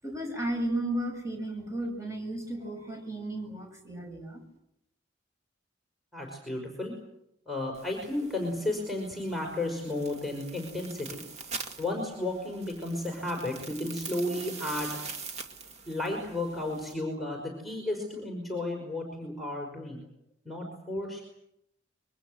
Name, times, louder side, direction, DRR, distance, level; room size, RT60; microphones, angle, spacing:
voice 1, 0.0-4.4, right 1 dB, 15° right, 2 dB, 7.5 m, -34 dB
voice 2, 6.1-6.9 7.5-11.2 11.8-15.0 15.9-20.0 20.4-21.2, left 1 dB, ahead, 1 dB, 5.4 m, -33 dB
sound 1, 7.7-16.9, right 4 dB, 35° right, 2.3 m, -44 dB
27.0 x 24.0 x 7.9 m, 0.80 s
head